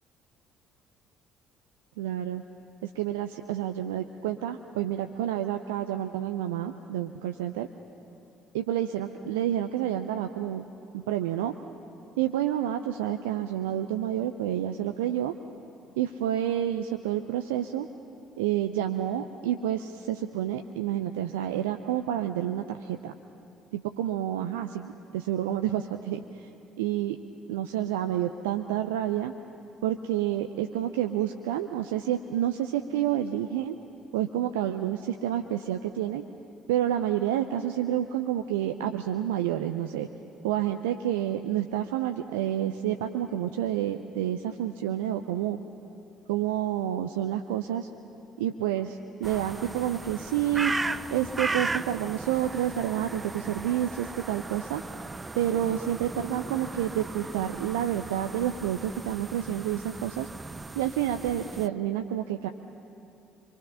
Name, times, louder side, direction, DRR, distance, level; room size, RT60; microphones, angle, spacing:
voice 1, 2.0-2.4 2.8-7.7 8.5-10.6 10.9-11.5 12.2-15.3 16.0-17.9 18.4-23.1 23.7-26.5 26.8-27.2 27.5-29.3 29.8-33.7 34.1-36.2 36.7-40.1 40.4-45.6 46.3-47.9 48.4-50.7 51.1-54.8 55.3-60.3 60.8-62.5, right 11 dB, 75° right, 7 dB, 0.5 m, -29 dB
sound 1, 49.2-61.7, right 3 dB, 20° right, 0.5 m, -37 dB
26.5 x 23.5 x 5.7 m, 2.8 s
figure-of-eight pair, 50°, 0 cm